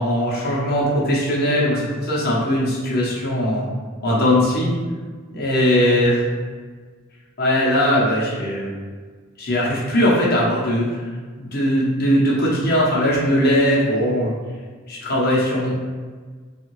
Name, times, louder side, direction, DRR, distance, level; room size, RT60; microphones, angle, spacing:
voice 1, 0.0-3.6 4.0-4.7 5.3-6.2 7.4-8.7 9.4-11.0 11.4-14.4 14.9-15.7, equal, 45° left, -6 dB, 0.8 m, -19 dB
2.6 x 2.4 x 3.0 m, 1.5 s
head